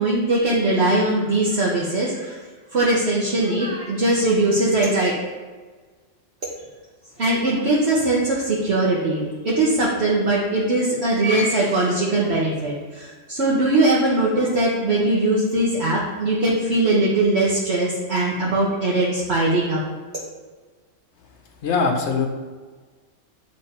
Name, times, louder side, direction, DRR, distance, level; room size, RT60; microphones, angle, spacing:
voice 1, 0.0-2.4 2.7-5.1 7.2-19.8, right 2 dB, 60° right, -5 dB, 1.2 m, -20 dB
voice 2, 21.6-22.3, left 4 dB, 65° left, 3 dB, 1.1 m, -23 dB
8.6 x 3.3 x 4.3 m, 1.4 s
omnidirectional pair, 1.3 m